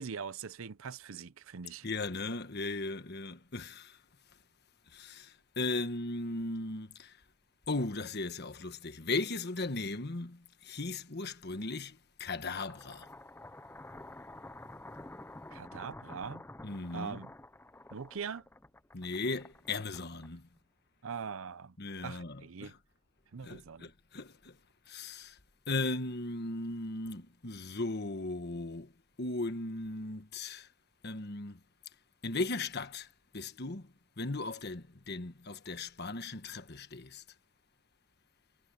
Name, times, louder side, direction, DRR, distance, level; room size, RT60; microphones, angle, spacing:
voice 1, 0.0-1.9 15.5-16.5 16.9-17.3 17.9-18.5 21.0-21.7 22.0-22.7 23.3-23.9, right 6 dB, 70° right, 0.6 m, -42 dB
voice 2, 1.8-4.0 4.9-7.2 7.7-13.1 16.6-17.2 18.9-20.5 21.8-22.8 23.4-24.6 24.9-25.4 25.7-28.9 29.2-30.7 31.0-31.6 32.2-33.1 33.3-33.9 34.2-37.2, left 3 dB, 50° left, 1.3 m, -37 dB
sound 1, 12.4-20.6, left 2 dB, 10° left, 0.6 m, -50 dB
head